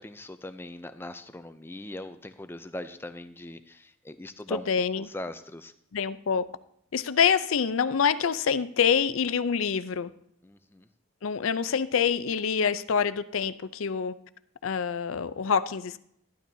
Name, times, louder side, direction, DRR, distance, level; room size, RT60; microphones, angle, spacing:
voice 1, 0.0-4.7 5.0-5.7 10.4-10.9, left 1 dB, 10° left, 9 dB, 0.5 m, -40 dB
voice 2, 4.5-5.1 5.9-6.4 6.9-10.1 11.2-14.1 14.6-16.0, left 7 dB, 80° left, 14 dB, 0.5 m, -26 dB
12.0 x 12.0 x 2.7 m, 0.69 s
head